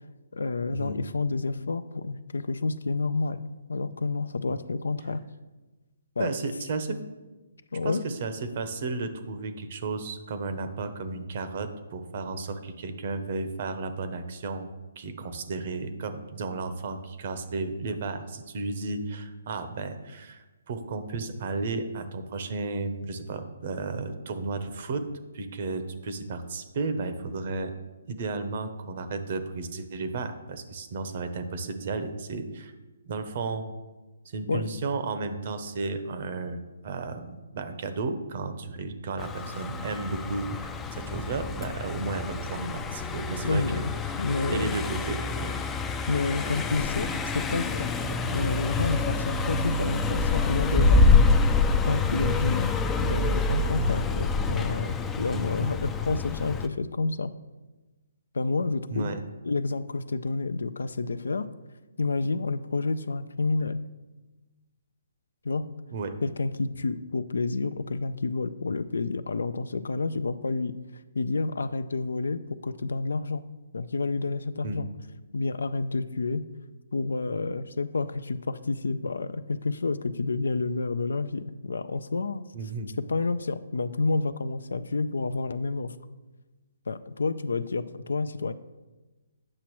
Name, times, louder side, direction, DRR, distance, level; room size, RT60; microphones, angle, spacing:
voice 1, 0.3-3.4 3.7-5.2 6.2-6.3 7.7-8.0 34.5-34.7 42.5-43.1 43.4-44.7 46.1-51.0 51.8-52.7 53.0-57.3 58.3-59.2 59.4-61.5 62.0-63.8 65.4-65.7 66.2-70.7 71.1-73.4 73.7-74.9 75.3-76.4 76.9-82.4 83.1-85.9 86.9-88.5, left 3 dB, 80° left, 14 dB, 0.4 m, -29 dB
voice 2, 6.2-7.0 7.8-14.7 15.0-25.0 25.3-27.7 28.1-32.7 33.1-33.6 34.2-44.1 44.5-45.6 55.3-55.5 58.9-59.2 65.9-66.1 74.6-74.8 82.5-82.9, right 3 dB, 45° right, 9 dB, 0.8 m, -33 dB
Car passing by, 39.2-56.7, left 3 dB, 10° left, 0.4 m, -26 dB
8.7 x 5.9 x 3.1 m, 1.2 s
hypercardioid pair, 150°, 0 cm